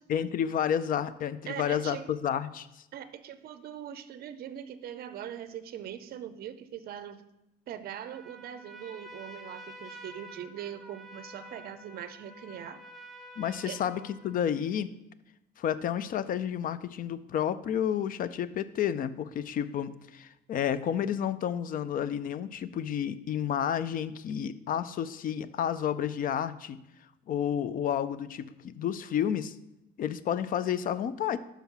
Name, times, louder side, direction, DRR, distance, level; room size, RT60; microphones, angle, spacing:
voice 1, 0.1-2.7 13.4-14.9 15.6-26.8 27.3-29.5 30.0-31.4, left 9 dB, 50° left, 15 dB, 0.4 m, -30 dB
voice 2, 1.5-2.1 2.9-7.2 7.7-12.8 13.6-13.8, right 10 dB, 55° right, 12 dB, 0.5 m, -41 dB
Trumpet, 8.0-14.5, equal, ahead, 0.7 m, -49 dB
5.7 x 5.5 x 5.9 m, 0.88 s
cardioid pair, 135°, 19 cm